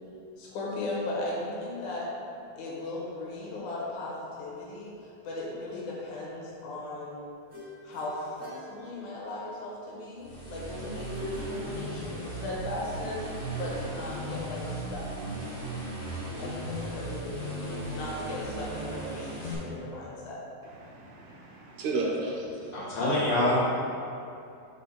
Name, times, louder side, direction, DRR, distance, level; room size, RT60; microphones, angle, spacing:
voice 1, 0.4-2.1 2.6-7.2 7.8-15.1 16.4-20.4, left 2 dB, 85° left, -4 dB, 2.6 m, -37 dB
sound 1, 7.5-9.5 10.9-12.5, left 2 dB, 45° right, 1.0 m, -43 dB
sound 2, 10.2-19.5, right 1 dB, 35° left, 1.1 m, -37 dB
voice 2, 20.6-22.7, right 2 dB, 75° right, -2 dB, 2.2 m, -33 dB
voice 3, 22.7-23.8, left 1 dB, 65° left, -7 dB, 2.4 m, -26 dB
5.5 x 5.0 x 4.0 m, 2.6 s
omnidirectional pair, 3.4 m